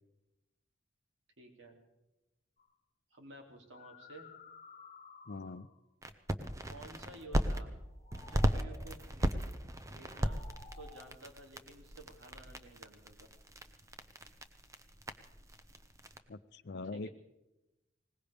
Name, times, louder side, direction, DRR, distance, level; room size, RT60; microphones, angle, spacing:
voice 1, 1.4-1.8 3.1-4.3 6.6-7.7 8.3-9.3 9.9-10.4 10.8-13.3 16.9-17.1, right 1 dB, 70° right, 2 dB, 2.9 m, -53 dB
sound 1, 2.6-2.7 3.5-5.9 7.8-8.9 9.9-11.0, left 4 dB, 35° left, 2.8 m, -55 dB
voice 2, 5.3-5.7 16.3-17.1, left 3 dB, 55° left, 14 dB, 0.5 m, -42 dB
sound 2, 6.0-7.6 8.1-16.2, equal, 15° right, 0.7 m, -37 dB
21.0 x 19.0 x 3.5 m, 0.97 s
head